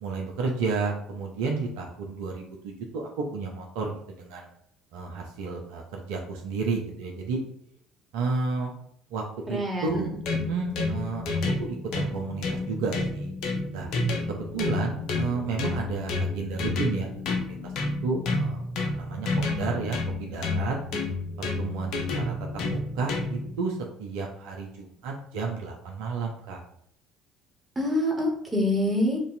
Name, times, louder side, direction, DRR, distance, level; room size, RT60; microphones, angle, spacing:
voice 1, 0.0-4.5 4.9-7.4 8.1-8.7 9.1-10.1 10.5-11.2 11.6-13.3 13.7-13.9 14.3-17.7 18.0-20.8 21.4-22.3 22.7-26.6, right 4 dB, 70° right, 0 dB, 0.6 m, -32 dB
voice 2, 9.5-10.1 27.7-29.2, left 1 dB, 20° right, -2 dB, 1.5 m, -26 dB
sound 1, 9.9-23.6, left 3 dB, 60° left, 0.7 m, -30 dB
3.0 x 2.6 x 4.0 m, 0.70 s
hypercardioid pair, 60°, 0 cm